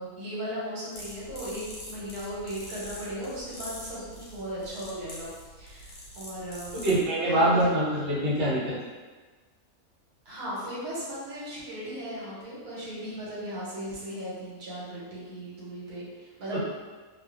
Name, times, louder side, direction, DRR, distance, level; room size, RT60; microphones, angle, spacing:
voice 1, 0.0-6.8 7.3-7.7 10.3-16.6, equal, 75° right, -8 dB, 1.3 m, -37 dB
sound 1, 0.9-7.1, left 1 dB, 80° left, 1.1 m, -44 dB
voice 2, 6.8-8.7 16.5-16.6, right 1 dB, 45° right, -9 dB, 0.9 m, -24 dB
2.5 x 2.4 x 2.3 m, 1.4 s
omnidirectional pair, 1.5 m